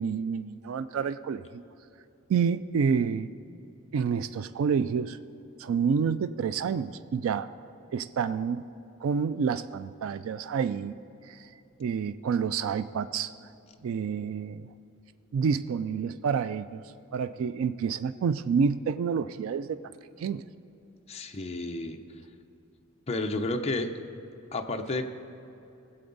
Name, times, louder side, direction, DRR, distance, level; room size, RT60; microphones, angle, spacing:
voice 1, 0.0-1.4 2.3-3.3 3.9-5.2 5.6-7.5 7.9-8.7 9.0-11.0 11.3-11.5 11.8-13.3 13.8-14.6 15.3-16.8 17.1-19.8 20.2-20.4, right 6 dB, 70° right, 13 dB, 0.3 m, -28 dB
voice 2, 21.1-22.0 23.1-23.9 24.5-25.1, left 2 dB, 30° left, 4 dB, 0.6 m, -31 dB
19.0 x 7.7 x 4.0 m, 2.9 s
head